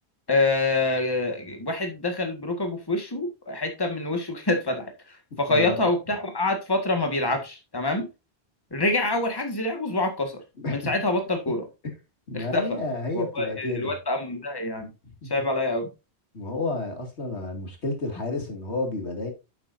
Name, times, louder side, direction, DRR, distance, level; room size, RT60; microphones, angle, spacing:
voice 1, 0.3-8.1 8.7-10.4 10.7-11.6 12.3-12.8 13.1-14.9 15.3-15.9, left 2 dB, 20° left, 1.9 m, -26 dB
voice 2, 5.5-5.8 10.6-10.8 12.3-13.9 15.2-15.3 16.3-19.3, left 2 dB, 85° left, 2.8 m, -30 dB
10.5 x 7.7 x 2.7 m
omnidirectional pair, 1.1 m